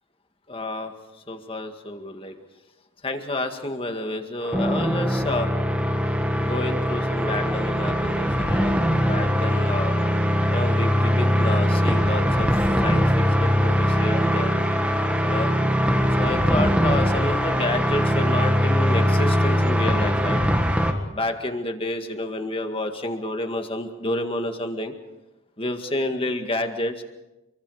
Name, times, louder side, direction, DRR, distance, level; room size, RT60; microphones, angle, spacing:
voice 1, 0.5-0.9 1.3-2.4 3.0-5.5 6.4-8.7 9.0-9.9 10.5-14.6 15.2-15.5 16.2-20.4 21.1-24.9 25.6-27.0, left 1 dB, 25° left, 6 dB, 2.0 m, -29 dB
sound 1, 4.4-20.9, equal, 5° right, 1.7 m, -21 dB
28.0 x 23.5 x 5.0 m, 1.0 s
head